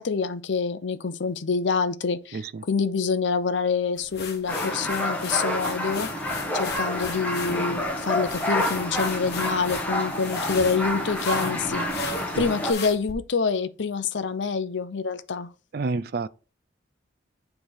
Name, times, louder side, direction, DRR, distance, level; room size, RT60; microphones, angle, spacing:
voice 1, 0.0-6.1 6.5-15.5, left 5 dB, 80° left, 0.6 m, -27 dB
voice 2, 2.3-2.6 12.3-12.5 15.7-16.3, right 3 dB, 55° right, 0.4 m, -29 dB
sound 1, 4.0-13.1, left 5 dB, 55° left, 1.1 m, -38 dB
sound 2, 4.5-12.7, left 1 dB, 10° left, 1.1 m, -28 dB
9.0 x 3.3 x 4.4 m
head